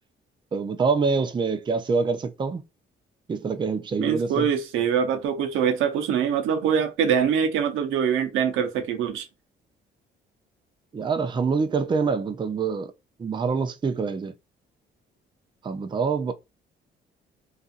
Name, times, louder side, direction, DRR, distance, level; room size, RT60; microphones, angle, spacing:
voice 1, 0.5-2.6 3.3-4.5 10.9-12.9 13.2-14.3 15.6-16.3, right 5 dB, 25° right, 0.4 m, -25 dB
voice 2, 4.0-9.3, right 7 dB, 90° right, 0.7 m, -24 dB
2.6 x 2.4 x 2.4 m
cardioid pair, 90°, 20 cm